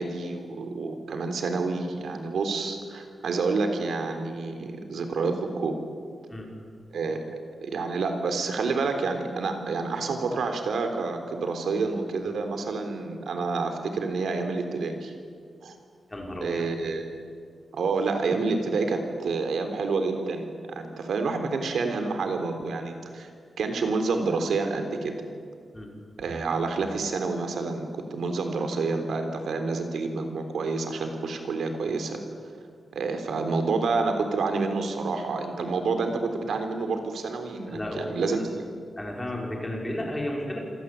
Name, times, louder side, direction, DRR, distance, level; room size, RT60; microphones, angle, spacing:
voice 1, 0.0-5.8 6.9-7.2 7.6-15.1 15.6-15.8 16.4-17.0 17.7-23.3 23.6-25.2 26.2-32.2 32.9-38.6, right 4 dB, 85° right, 6 dB, 3.6 m, -28 dB
voice 2, 16.1-16.6 25.7-25.9 37.7-38.0 39.0-40.6, left 1 dB, 10° left, -1 dB, 5.4 m, -33 dB
27.5 x 25.5 x 8.5 m, 2.1 s
wide cardioid pair, 180°, 0 cm